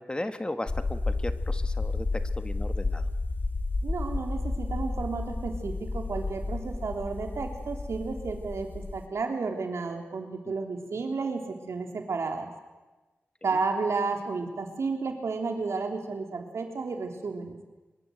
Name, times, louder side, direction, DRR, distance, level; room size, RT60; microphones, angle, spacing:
voice 1, 0.0-2.1 2.4-3.1 10.4-10.5, left 1 dB, 20° left, 9 dB, 1.5 m, -36 dB
sound 1, 0.7-9.1, left 3 dB, 45° left, 1.9 m, -31 dB
voice 2, 3.8-12.5 13.4-17.6, right 4 dB, 85° right, 4 dB, 3.6 m, -32 dB
24.5 x 23.0 x 8.0 m, 1.2 s
wide cardioid pair, 85°, 5 cm